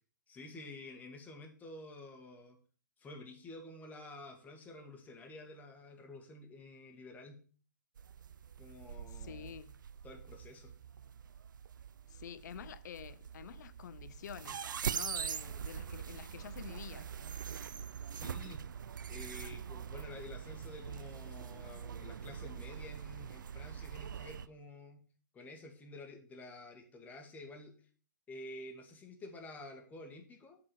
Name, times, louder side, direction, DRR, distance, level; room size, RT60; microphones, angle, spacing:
voice 1, 0.3-2.6 3.0-7.4 8.6-9.5 10.0-10.7 18.1-18.6 19.1-25.0 25.3-27.7 28.3-30.6, left 2 dB, 15° left, 1.9 m, -50 dB
sound 1, 8.0-24.5, right 8 dB, 80° right, 0.4 m, -43 dB
voice 2, 9.1-9.8 12.1-17.1, left 9 dB, 60° left, 0.6 m, -49 dB
7.5 x 4.8 x 6.3 m
hypercardioid pair, 130°, 11 cm